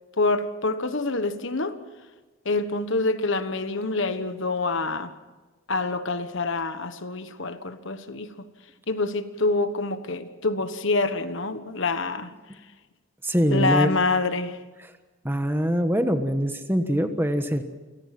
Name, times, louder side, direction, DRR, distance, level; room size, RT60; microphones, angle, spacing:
voice 1, 0.2-1.8 2.4-5.1 5.7-8.3 8.9-12.3 13.5-14.6, left 3 dB, 55° left, 1.3 m, -26 dB
voice 2, 13.2-13.9 15.2-17.6, equal, 10° right, 1.3 m, -23 dB
29.0 x 18.0 x 6.0 m
head